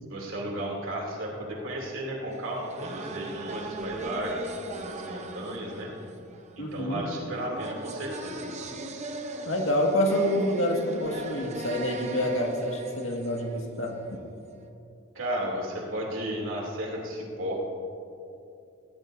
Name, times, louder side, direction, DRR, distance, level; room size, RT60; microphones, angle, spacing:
voice 1, 0.1-5.9 6.6-8.5 15.1-17.6, right 1 dB, 75° right, -2 dB, 2.8 m, -34 dB
sound 1, 2.3-14.2, right 2 dB, 35° right, 0.8 m, -39 dB
voice 2, 6.6-7.0 9.5-13.9, equal, 75° left, 1 dB, 1.8 m, -27 dB
18.0 x 16.5 x 2.7 m, 2.7 s
head